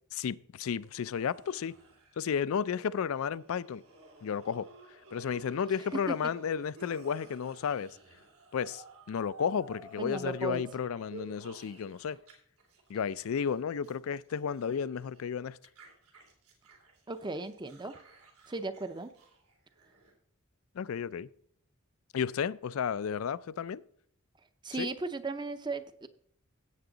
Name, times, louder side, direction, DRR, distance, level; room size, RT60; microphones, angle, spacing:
voice 1, 0.1-1.7 2.2-3.8 4.2-4.7 5.1-8.0 8.5-12.2 12.9-15.6 20.7-21.3 22.1-23.8 24.7-24.9, left 7 dB, 70° left, 0.4 m, -33 dB
sound 1, 0.8-12.3 12.6-15.2 15.6-20.1, right 2 dB, 85° right, 2.9 m, -54 dB
voice 2, 10.0-10.6 17.1-18.0 18.5-19.1 24.6-26.1, right 3 dB, 20° right, 0.6 m, -36 dB
16.0 x 7.0 x 3.9 m
head